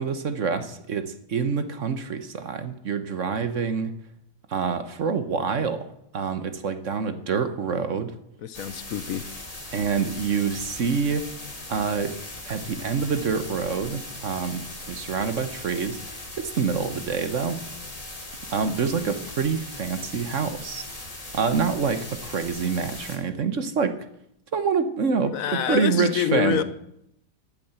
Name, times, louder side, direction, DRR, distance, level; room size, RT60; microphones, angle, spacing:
voice 1, 0.0-3.9 4.5-5.9 6.1-8.1 9.7-11.3 11.7-12.1 12.5-16.0 16.4-17.6 18.5-20.8 21.3-23.9 24.5-26.6, right 5 dB, 50° right, 10 dB, 1.2 m, -26 dB
voice 2, 8.4-9.3 25.2-26.6, left 9 dB, 60° left, 14 dB, 1.0 m, -26 dB
sound 1, 8.5-23.2, left 2 dB, 20° left, 2.6 m, -39 dB
14.5 x 8.7 x 8.1 m, 0.77 s
omnidirectional pair, 1.9 m